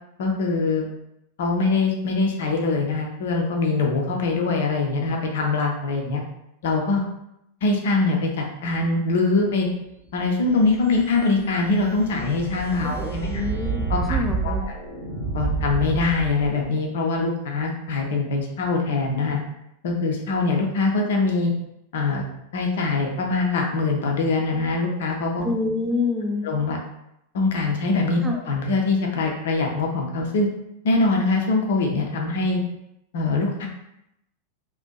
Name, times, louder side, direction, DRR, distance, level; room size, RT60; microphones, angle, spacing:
voice 1, 0.2-0.9 1.4-6.2 6.6-7.0 7.6-9.7 10.1-13.3 13.9-14.7 15.3-19.4 19.8-21.5 21.9-22.2 22.5-25.4 26.4-26.8 27.3-30.5 30.8-32.6 33.1-33.7, left 3 dB, 55° left, 1 dB, 0.5 m, -23 dB
sound 1, 10.4-16.7, right 4 dB, 30° right, 0.8 m, -30 dB
voice 2, 12.8-13.8 14.1-14.7 25.4-26.4 28.2-28.4, left 3 dB, 15° right, 2 dB, 0.4 m, -26 dB
2.5 x 2.1 x 2.2 m, 0.82 s
figure-of-eight pair, 90°, 0 cm